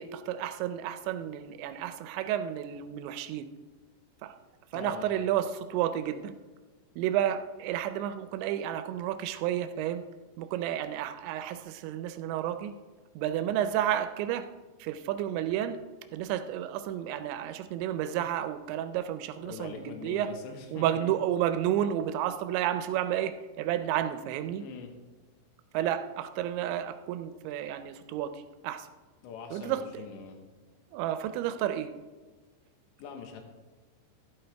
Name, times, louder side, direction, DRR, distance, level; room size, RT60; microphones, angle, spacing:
voice 1, 0.0-3.5 4.2-4.3 4.7-6.4 7.0-10.0 10.4-12.7 13.2-14.5 14.8-15.8 16.1-20.3 20.7-24.6 25.7-28.9 29.5-30.0 30.9-31.9, right 11 dB, 90° right, 10 dB, 2.8 m, -31 dB
voice 2, 4.7-5.3 19.4-21.1 24.6-24.9 29.2-30.4 33.0-33.4, left 5 dB, 85° left, 5 dB, 3.5 m, -43 dB
12.0 x 11.0 x 3.3 m, 1.3 s
omnidirectional pair, 5.1 m